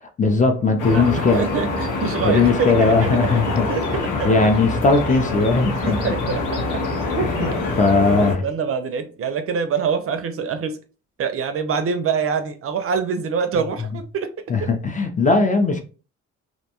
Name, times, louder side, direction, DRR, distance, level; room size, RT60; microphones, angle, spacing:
voice 1, 0.0-1.4 2.2-3.7 4.1-6.0 7.4-7.5 7.8-8.4 14.5-15.8, left 3 dB, 25° left, 0.5 m, -18 dB
sound 1, 0.8-8.4, left 3 dB, 85° left, 0.8 m, -25 dB
voice 2, 0.9-4.5 5.6-10.8 11.2-14.7, right 6 dB, 50° right, 0.4 m, -26 dB
2.6 x 2.2 x 2.8 m
cardioid pair, 90°, 30 cm